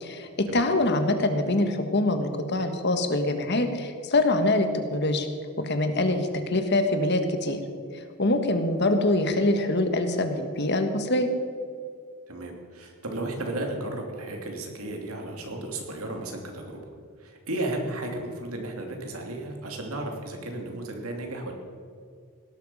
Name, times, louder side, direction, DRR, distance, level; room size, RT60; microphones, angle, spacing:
voice 1, 0.0-5.3 5.6-7.6 7.9-11.3, left 2 dB, 50° left, 7 dB, 1.5 m, -24 dB
voice 2, 12.3-16.8 17.2-21.5, right 1 dB, 85° right, 2 dB, 2.9 m, -34 dB
18.0 x 12.0 x 5.6 m, 2.2 s
head